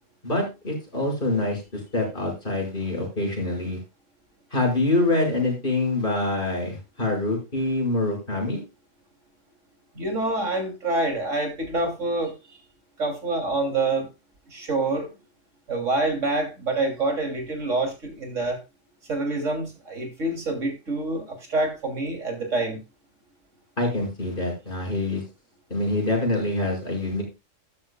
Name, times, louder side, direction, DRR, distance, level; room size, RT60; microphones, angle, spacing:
voice 1, 0.2-3.8 4.5-8.6 23.8-25.2 25.7-27.2, left 2 dB, 45° left, 0 dB, 5.9 m, -25 dB
voice 2, 10.0-12.6 13.0-14.1 14.5-15.1 15.7-18.6 19.1-22.8, right 2 dB, 80° right, 4 dB, 3.5 m, -26 dB
13.0 x 11.0 x 2.3 m, 0.25 s
omnidirectional pair, 1.3 m